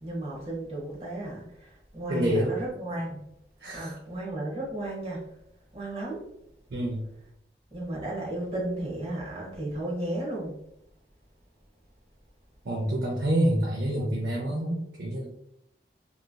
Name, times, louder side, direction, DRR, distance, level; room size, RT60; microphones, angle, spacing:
voice 1, 0.0-3.2 3.7-5.3 5.7-6.2 7.7-10.5, right 1 dB, 35° right, -3 dB, 0.9 m, -34 dB
voice 2, 2.1-2.5 3.6-4.0 6.7-7.0 12.6-15.3, right 1 dB, 75° right, -2 dB, 0.5 m, -27 dB
3.0 x 2.5 x 2.2 m, 0.76 s
head